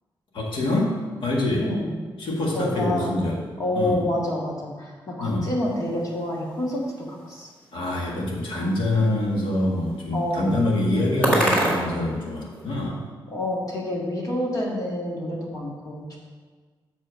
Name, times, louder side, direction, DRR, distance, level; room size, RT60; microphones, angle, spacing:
voice 1, 0.3-1.7 2.2-3.4 3.7-4.0 5.2-5.5 7.7-13.0, left 1 dB, 80° left, -2 dB, 1.8 m, -25 dB
voice 2, 2.5-3.1 3.6-6.8 7.1-7.5 10.1-10.6 13.3-16.2, left 1 dB, 45° left, -3 dB, 1.8 m, -28 dB
sound 1, 5.6-12.8, right 1 dB, 15° left, 1.8 m, -31 dB
6.7 x 5.1 x 6.2 m, 1.5 s
wide cardioid pair, 180°, 8 cm